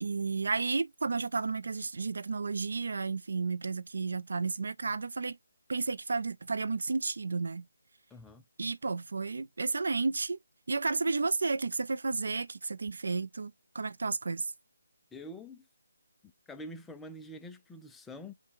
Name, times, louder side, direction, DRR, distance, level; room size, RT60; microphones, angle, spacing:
voice 1, 0.0-5.4 5.7-7.6 8.6-10.4 10.7-14.5, right 4 dB, 65° right, 0.5 m, -32 dB
voice 2, 8.1-8.4 15.1-15.7 16.2-18.3, left 1 dB, 5° left, 0.3 m, -46 dB
5.3 x 2.1 x 3.8 m
hypercardioid pair, 170°, 0 cm